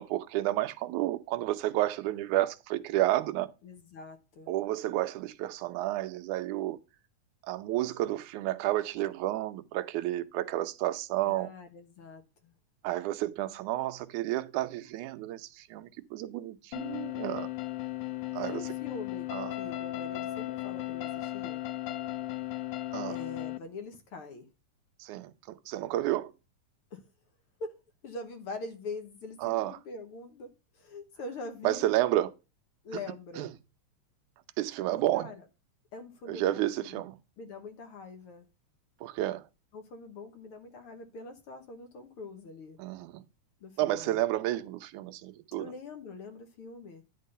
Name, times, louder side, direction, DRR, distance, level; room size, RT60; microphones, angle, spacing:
voice 1, 0.0-3.5 4.5-6.8 7.5-11.5 12.8-17.5 18.3-18.6 19.3-19.5 22.9-23.2 25.0-26.3 29.4-29.8 31.6-32.3 33.4-33.5 34.6-35.3 36.3-37.2 39.0-39.5 42.8-43.2 43.8-45.7, right 15 dB, 75° right, 2.1 m, -31 dB
voice 2, 3.6-4.5 11.2-12.5 18.4-21.6 23.1-24.5 26.9-27.0 27.6-27.8 28.0-30.5 30.7-31.9 32.8-33.5 34.9-35.4 35.9-37.0 37.4-38.5 39.7-42.8 43.6-44.2 45.6-47.0, left 3 dB, 60° left, 1.6 m, -44 dB
sound 1, 16.7-23.6, left 15 dB, 90° left, 1.5 m, -36 dB
11.0 x 3.8 x 6.6 m
omnidirectional pair, 3.7 m